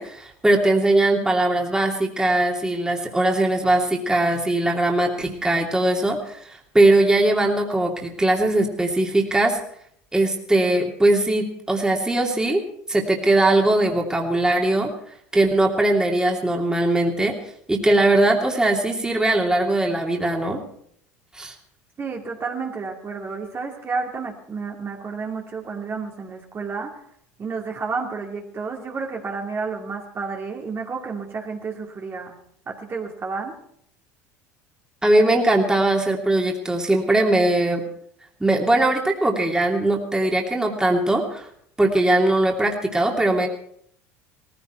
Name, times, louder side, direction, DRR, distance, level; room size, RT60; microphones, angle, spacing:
voice 1, 0.0-9.6 10.1-12.6 12.9-14.9 15.3-17.3 17.7-20.6 21.3-21.5 35.0-37.8 38.4-41.5 41.8-43.5, right 2 dB, 10° right, 1 dB, 2.9 m, -20 dB
voice 2, 22.0-27.0 27.4-32.4 32.7-33.6, right 4 dB, 35° right, 0 dB, 2.6 m, -31 dB
18.5 x 15.0 x 4.5 m, 0.68 s
hypercardioid pair, 75°, 8 cm